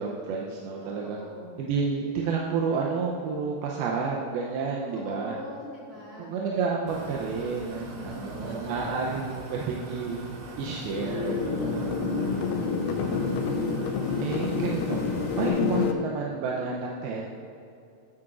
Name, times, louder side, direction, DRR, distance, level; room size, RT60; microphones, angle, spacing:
voice 1, 0.0-1.2 1.6-5.3 6.2-10.2 10.6-11.9 12.2-12.5 13.2-13.6 14.2-15.0 15.3-17.2, right 5 dB, 80° right, -2 dB, 2.5 m, -30 dB
voice 2, 0.8-1.6 4.9-6.3 7.6-8.7 11.6-12.7, equal, 40° right, -8 dB, 1.4 m, -43 dB
sound 1, 6.9-15.5, right 2 dB, 60° right, 2.4 m, -40 dB
sound 2, 10.9-15.9, left 5 dB, 75° left, 2.0 m, -28 dB
12.5 x 9.7 x 2.5 m, 2.6 s
omnidirectional pair, 4.6 m